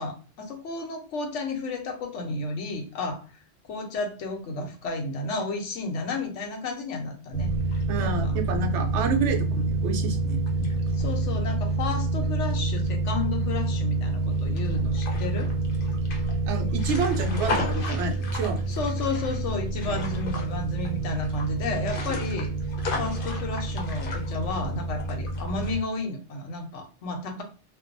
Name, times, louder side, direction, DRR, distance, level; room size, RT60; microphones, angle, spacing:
voice 1, 0.0-3.3 3.7-7.5 8.0-8.3 10.9-15.5 18.7-22.5 23.0-27.4, left 3 dB, 90° left, 4 dB, 1.0 m, -32 dB
sound 1, 7.3-25.8, right 2 dB, 55° left, 0.8 m, -28 dB
voice 2, 7.9-10.7 16.5-18.6, right 4 dB, 80° right, 5 dB, 0.9 m, -29 dB
2.5 x 2.2 x 2.5 m, 0.37 s
omnidirectional pair, 1.2 m